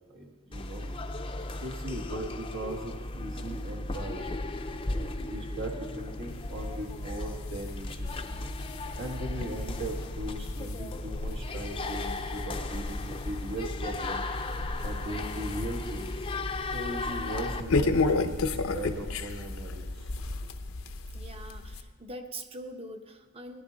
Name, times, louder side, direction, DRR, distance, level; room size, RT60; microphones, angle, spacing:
voice 1, 0.1-0.9 1.5-4.3 4.8-8.1 9.0-14.3 14.8-16.1 16.7-20.2, right 1 dB, 60° right, 0 dB, 1.5 m, -39 dB
sound 1, 0.5-17.6, left 2 dB, 25° left, 0.6 m, -36 dB
sound 2, 6.3-21.8, left 3 dB, 75° left, 0.7 m, -34 dB
voice 2, 21.1-23.6, right 1 dB, 25° right, 6 dB, 0.9 m, -43 dB
18.5 x 10.5 x 3.9 m, 1.4 s
head